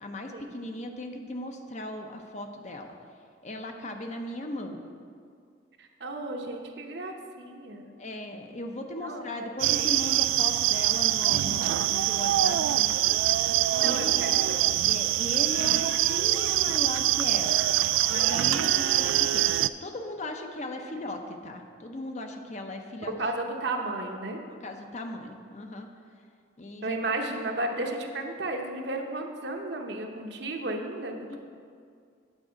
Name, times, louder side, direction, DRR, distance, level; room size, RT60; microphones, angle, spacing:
voice 1, 0.0-2.9 3.4-4.8 8.0-12.6 13.0-13.2 13.8-14.3 14.9-17.6 18.1-19.5 19.8-23.1 24.5-25.9 26.6-27.0 31.3-31.4, left 1 dB, 35° left, 4 dB, 0.7 m, -37 dB
voice 2, 5.8-7.8 9.0-9.8 12.5-12.9 13.8-14.5 23.2-24.4 26.8-31.4, right 2 dB, 60° right, 2 dB, 0.9 m, -34 dB
sound 1, 9.6-19.7, right 14 dB, 90° right, 0.3 m, -24 dB
9.0 x 4.8 x 7.5 m, 2.2 s
head